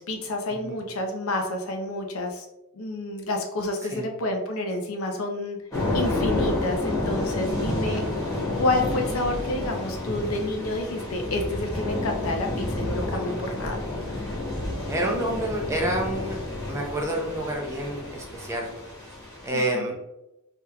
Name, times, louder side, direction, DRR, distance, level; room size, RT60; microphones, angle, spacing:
voice 1, 0.0-2.5 2.7-5.6 5.9-8.0 8.6-13.8 19.5-19.9, left 2 dB, 75° left, 3 dB, 0.6 m, -29 dB
Thunder / Rain, 5.7-19.5, left 2 dB, 15° left, 1.0 m, -30 dB
voice 2, 14.9-16.4 16.7-18.7 19.4-20.0, right 1 dB, 15° right, -1 dB, 0.5 m, -28 dB
3.5 x 2.8 x 2.2 m, 0.92 s
head